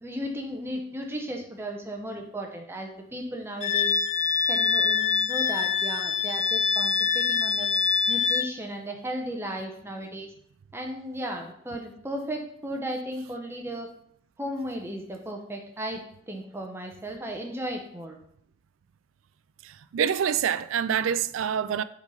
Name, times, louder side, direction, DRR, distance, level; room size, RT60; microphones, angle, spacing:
voice 1, 0.0-3.9 4.5-7.7 8.1-10.3 10.7-13.9 14.4-18.2, right 1 dB, 10° right, 0.8 m, -35 dB
Wind instrument woodwind instrument, 3.6-8.5, left 5 dB, 35° left, 0.3 m, -25 dB
voice 2, 19.6-21.8, right 8 dB, 90° right, 0.4 m, -26 dB
5.9 x 4.0 x 5.4 m
head